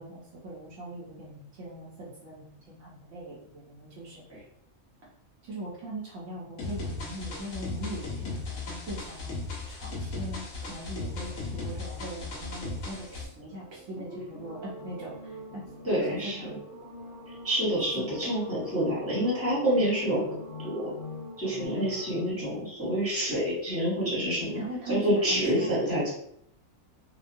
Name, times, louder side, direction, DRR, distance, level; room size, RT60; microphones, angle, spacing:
voice 1, 0.0-4.2 5.4-9.4 9.7-15.6 15.9-16.6 24.5-26.0, right 1 dB, 70° right, -5 dB, 1.0 m, -40 dB
sound 1, 6.6-13.2, left 3 dB, 75° left, 1.1 m, -36 dB
sound 2, 11.7-22.3, left 1 dB, 55° left, 0.8 m, -44 dB
voice 2, 15.8-16.5 17.4-20.2 20.6-20.9 21.4-24.6 24.9-26.1, equal, 10° right, -8 dB, 1.0 m, -27 dB
2.9 x 2.2 x 2.5 m, 0.72 s
omnidirectional pair, 1.4 m